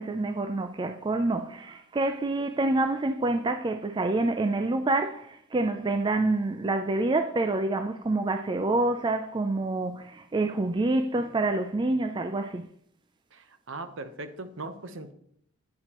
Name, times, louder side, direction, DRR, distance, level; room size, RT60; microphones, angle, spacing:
voice 1, 0.0-12.7, right 2 dB, 20° right, 0.4 m, -27 dB
voice 2, 13.3-15.1, right 2 dB, 60° right, 0.9 m, -39 dB
11.0 x 9.6 x 3.0 m
head